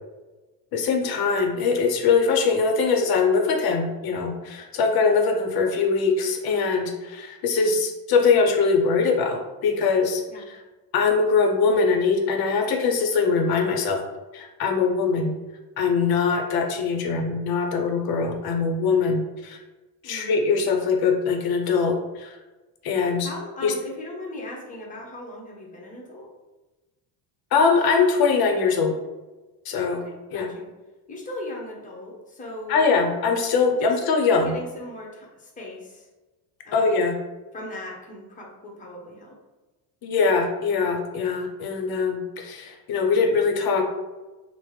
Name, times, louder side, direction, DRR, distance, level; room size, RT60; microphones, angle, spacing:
voice 1, 0.7-10.6 10.9-14.0 14.3-15.3 15.8-19.6 20.0-22.4 22.8-23.3 23.6-23.7 27.5-28.9 29.7-30.0 30.3-30.5 32.7-34.6 36.7-37.2 40.0-43.8, left 4 dB, 50° left, 3 dB, 0.7 m, -22 dB
voice 2, 20.0-20.4 23.2-26.3 29.9-30.7 31.1-32.8 33.7-34.0 34.4-36.1 36.6-37.1 37.5-39.4, left 1 dB, 15° left, -2 dB, 0.8 m, -38 dB
3.3 x 2.1 x 3.1 m, 1.1 s
cardioid pair, 100°, 48 cm